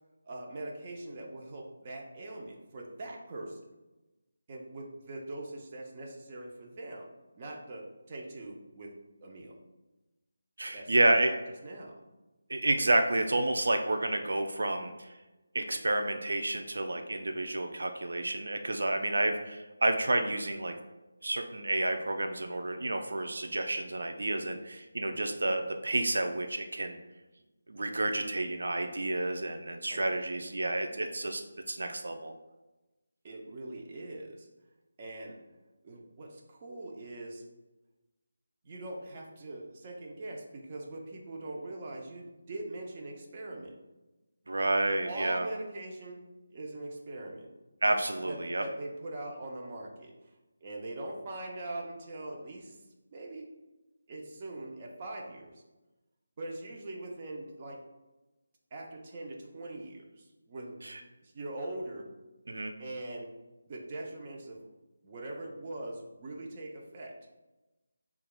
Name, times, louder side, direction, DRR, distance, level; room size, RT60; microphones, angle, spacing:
voice 1, 0.3-3.6 4.5-7.1 7.4-8.9 9.2-9.6 10.7-11.9 25.0-25.3 29.9-30.1 33.2-34.5 35.0-35.4 35.8-37.4 38.6-43.7 45.0-46.2 46.5-47.5 48.2-50.1 50.6-52.8 53.1-53.5 54.1-55.5 56.4-57.8 58.7-60.8 61.2-62.1 62.8-63.3 63.7-64.7 65.0-67.2, right 2 dB, 30° right, -1 dB, 0.5 m, -42 dB
voice 2, 10.6-11.3 12.5-15.1 15.5-20.8 21.2-27.0 27.7-31.4 31.7-32.3 44.5-45.5 47.8-48.6 60.8-61.0 62.5-62.7, right 2 dB, 75° right, 5 dB, 0.4 m, -30 dB
6.4 x 2.3 x 2.2 m, 1.1 s
figure-of-eight pair, 170°, 0 cm